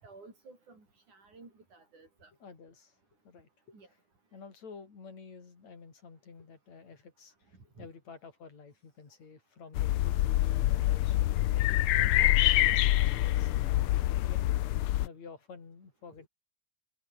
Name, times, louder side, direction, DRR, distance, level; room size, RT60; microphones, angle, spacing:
voice 1, 0.0-2.3 3.7-3.9 7.8-7.9, right 3 dB, 90° right, 9.3 m, -54 dB
voice 2, 2.4-3.0 3.2-3.8 4.3-12.0 12.3-14.4 15.0-16.3, left 5 dB, 65° left, 5.8 m, -51 dB
sound 1, 9.7-15.1, left 15 dB, 85° left, 1.2 m, -26 dB
omnidirectional pair, 3.4 m